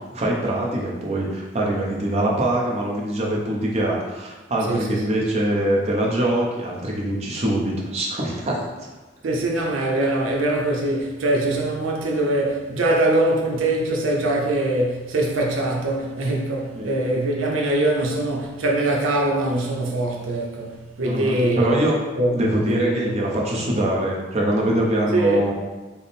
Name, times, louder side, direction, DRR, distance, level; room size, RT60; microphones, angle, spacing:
voice 1, 0.1-8.9 16.7-16.9 21.1-22.0 22.3-25.5, right 1 dB, 35° right, 0.6 m, -23 dB
voice 2, 4.6-5.2 9.2-21.9 22.1-22.4 22.7-23.1 25.1-25.4, right 1 dB, 90° right, 0.6 m, -23 dB
3.5 x 2.0 x 4.1 m
head